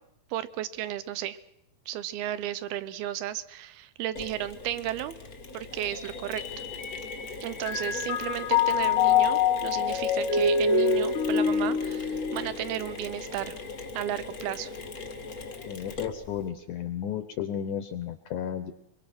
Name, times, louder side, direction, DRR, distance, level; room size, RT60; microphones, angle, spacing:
voice 1, 0.3-1.4 1.9-5.1 5.5-6.6 7.4-13.6 13.9-14.7, right 12 dB, 80° right, 15 dB, 2.8 m, -34 dB
Mechanisms, 4.1-16.5, left 3 dB, 55° left, 1.0 m, -40 dB
Mallet percussion, 5.9-7.3 7.6-13.1, left 6 dB, 90° left, 3.7 m, -26 dB
voice 2, 15.7-18.7, left 9 dB, 70° left, 10 dB, 2.0 m, -33 dB
24.0 x 23.5 x 6.1 m, 0.84 s
omnidirectional pair, 4.5 m